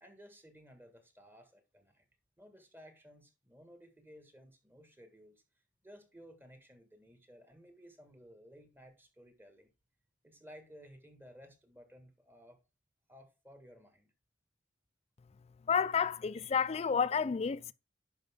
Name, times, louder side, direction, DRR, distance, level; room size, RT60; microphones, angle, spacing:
voice 1, 0.0-2.0 2.4-5.4 5.8-9.7 10.2-12.6 13.1-14.1, equal, 10° right, 1.7 m, -57 dB
voice 2, 15.7-17.7, left 6 dB, 35° left, 0.3 m, -30 dB
10.5 x 5.3 x 3.6 m
head